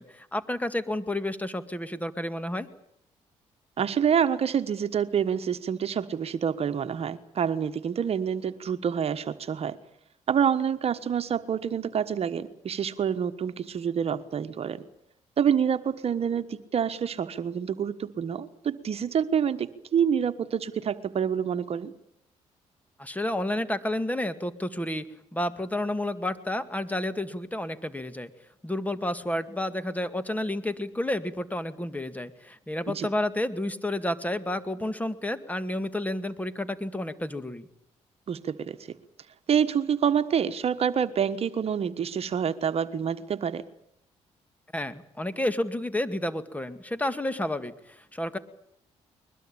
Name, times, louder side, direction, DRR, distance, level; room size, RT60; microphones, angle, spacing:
voice 1, 0.0-2.7 23.0-25.1 25.3-28.3 28.6-37.7 44.7-48.4, left 1 dB, 10° left, 12 dB, 2.1 m, -30 dB
voice 2, 3.8-9.8 10.3-14.8 15.4-21.9 32.9-33.1 38.3-38.8 39.5-43.6, right 8 dB, 55° right, 10 dB, 1.3 m, -27 dB
22.0 x 21.5 x 8.8 m, 0.75 s
supercardioid pair, 70°, 12 cm